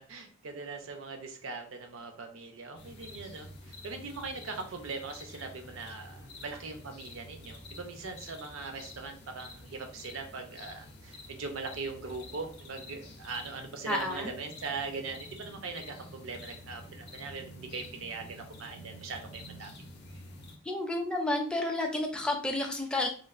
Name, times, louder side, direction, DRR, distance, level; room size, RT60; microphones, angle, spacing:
voice 1, 0.0-19.7, right 4 dB, 75° right, 5 dB, 0.5 m, -41 dB
sound 1, 2.8-20.6, left 1 dB, 55° left, 0.5 m, -49 dB
voice 2, 13.9-14.3 20.6-23.1, left 2 dB, 5° left, 1 dB, 0.4 m, -31 dB
3.2 x 2.3 x 2.4 m, 0.43 s
head